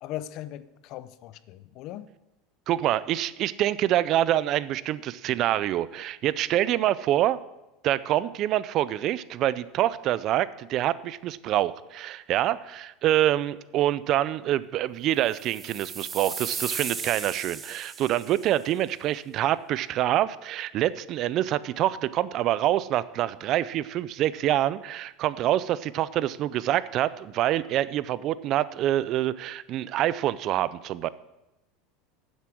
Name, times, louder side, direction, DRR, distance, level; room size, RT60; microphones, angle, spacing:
voice 1, 0.0-2.1, left 13 dB, 55° left, 0.6 m, -39 dB
voice 2, 2.7-7.4 7.8-31.1, right 13 dB, 50° right, 0.4 m, -26 dB
sound 1, 15.3-18.5, right 5 dB, 20° right, 1.1 m, -36 dB
9.6 x 8.2 x 6.1 m
supercardioid pair, 120°, 0 cm